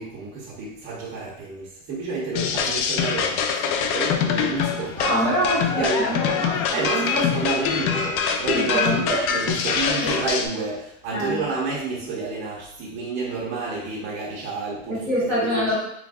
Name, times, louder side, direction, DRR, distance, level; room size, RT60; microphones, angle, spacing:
voice 1, 0.0-5.2 5.5-6.4 6.7-15.0 15.3-15.7, right 4 dB, 25° right, -8 dB, 0.6 m, -29 dB
sound 1, 2.3-10.5, left 7 dB, 85° left, 0.6 m, -24 dB
voice 2, 5.0-7.3 8.5-9.2 10.0-10.1 11.1-11.4 14.9-15.8, equal, 5° left, -12 dB, 1.0 m, -26 dB
3.2 x 2.4 x 3.5 m, 0.77 s
cardioid pair, 180°, 42 cm